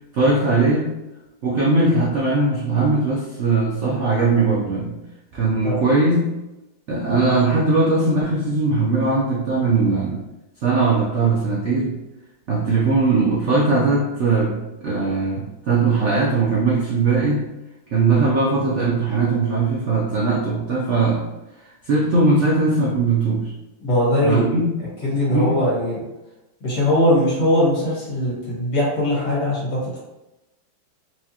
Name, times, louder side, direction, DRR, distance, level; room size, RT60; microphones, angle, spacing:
voice 1, 0.1-0.9 1.4-5.0 5.3-6.3 6.9-10.2 10.6-12.0 12.5-17.4 17.9-21.3 21.6-23.5 24.2-24.7 25.3-25.5, right 3 dB, 85° right, -5 dB, 0.6 m, -20 dB
voice 2, 23.8-24.5 25.0-26.0 26.6-30.0, left 1 dB, 65° left, -6 dB, 2.2 m, -20 dB
4.5 x 2.4 x 2.8 m, 0.97 s
omnidirectional pair, 2.0 m